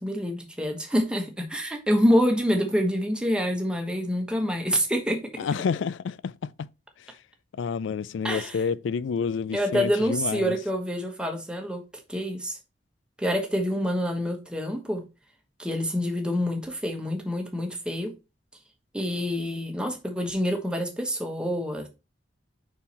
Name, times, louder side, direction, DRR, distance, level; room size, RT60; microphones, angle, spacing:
voice 1, 0.0-5.2 8.2-8.6 9.5-11.8 12.1-12.6 13.2-15.0 15.6-18.1 18.9-21.9, equal, 5° right, 1.1 m, -26 dB
voice 2, 5.4-6.7 7.6-10.6, left 6 dB, 80° left, 0.4 m, -29 dB
5.6 x 4.6 x 4.2 m
head